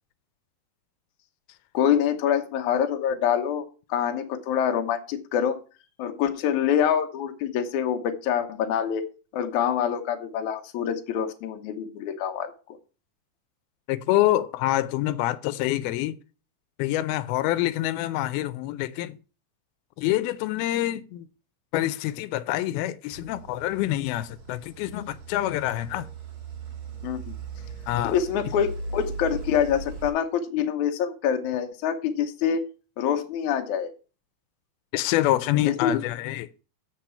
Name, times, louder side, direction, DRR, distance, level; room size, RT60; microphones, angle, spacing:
voice 1, 1.7-5.6 6.0-9.1 9.3-12.8 27.0-27.2 28.0-32.6 33.0-33.9 35.6-35.9, left 8 dB, 65° left, 2.1 m, -26 dB
voice 2, 13.9-16.2 16.8-19.2 20.0-21.3 21.7-26.1 27.9-28.2 34.9-36.5, left 15 dB, 90° left, 2.5 m, -26 dB
sound 1, 23.1-30.1, right 3 dB, 50° right, 3.3 m, -38 dB
7.5 x 6.6 x 5.7 m
omnidirectional pair, 4.2 m